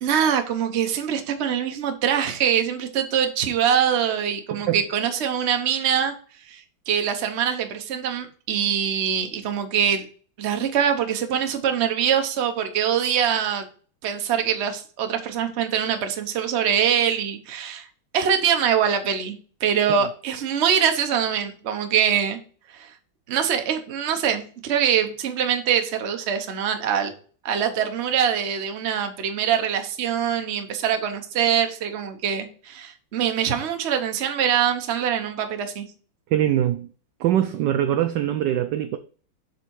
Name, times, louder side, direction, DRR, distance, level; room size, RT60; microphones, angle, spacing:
voice 1, 0.0-6.1 6.5-10.0 10.4-13.6 14.0-17.9 18.1-22.4 22.7-22.9 23.3-27.1 27.4-35.9, right 8 dB, 50° right, 0.8 m, -23 dB
voice 2, 36.3-36.9 37.2-39.0, right 11 dB, 80° right, 1.0 m, -23 dB
7.1 x 4.2 x 4.6 m
omnidirectional pair, 2.4 m